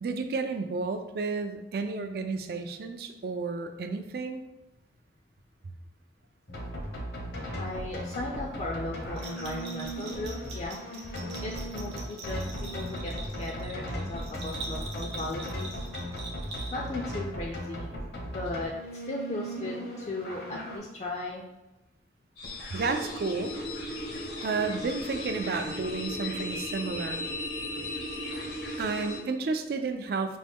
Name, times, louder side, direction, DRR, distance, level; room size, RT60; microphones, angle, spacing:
voice 1, 0.0-4.4 22.7-23.6 24.4-27.2 28.8-30.4, right 4 dB, 55° right, 7 dB, 0.4 m, -32 dB
sound 1, 6.5-20.8, equal, 65° left, 0.8 m, -37 dB
voice 2, 7.6-10.8 11.4-15.8 16.7-17.9 18.3-18.7 19.0-21.4 27.7-27.9, left 2 dB, 40° left, -1 dB, 0.4 m, -37 dB
Bell, 9.2-17.0, right 3 dB, 75° right, 0.8 m, -43 dB
sound 2, 22.4-29.2, left 1 dB, 85° left, 1.1 m, -36 dB
5.2 x 2.2 x 3.5 m, 1.0 s
head